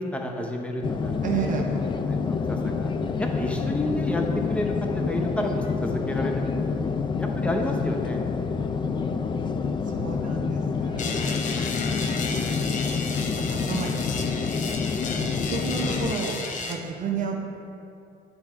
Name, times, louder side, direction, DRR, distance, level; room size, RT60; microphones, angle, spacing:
voice 1, 0.0-1.5 2.1-2.9 3.2-4.2 4.5-6.5 7.2-8.2, left 1 dB, 5° left, 1 dB, 0.8 m, -30 dB
sound 1, 0.8-16.1, left 5 dB, 30° left, 0.3 m, -27 dB
voice 2, 1.2-1.8 9.8-12.9 13.3-16.4 16.7-17.4, right 6 dB, 50° right, 1 dB, 0.8 m, -33 dB
sound 2, 11.0-16.7, left 5 dB, 50° left, 0.8 m, -33 dB
9.7 x 3.5 x 4.4 m, 2.7 s
cardioid pair, 110°, 17 cm